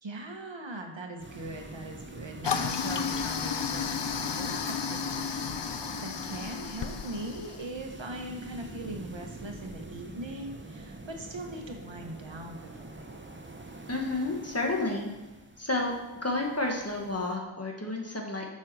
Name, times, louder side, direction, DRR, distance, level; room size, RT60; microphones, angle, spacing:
voice 1, 0.0-13.2, right 1 dB, 70° right, 3 dB, 1.2 m, -41 dB
sound 1, 1.2-17.4, right 2 dB, 25° right, 1.0 m, -46 dB
Toilet flush, 2.4-7.7, left 6 dB, 65° left, 0.7 m, -32 dB
voice 2, 13.9-15.1 15.6-15.9 16.2-18.5, left 2 dB, 30° left, 0 dB, 1.8 m, -30 dB
7.5 x 5.6 x 6.3 m, 1.1 s
wide cardioid pair, 45°, 46 cm